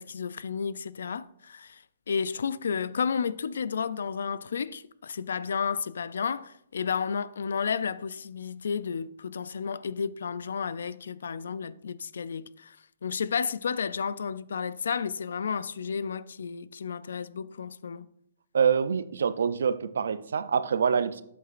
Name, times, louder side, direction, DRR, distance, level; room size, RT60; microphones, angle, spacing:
voice 1, 0.0-12.8 13.0-18.1, left 6 dB, 80° left, 0.3 m, -32 dB
voice 2, 18.5-21.2, right 6 dB, 75° right, 0.4 m, -25 dB
7.9 x 7.8 x 2.5 m
hypercardioid pair, 175°, 0 cm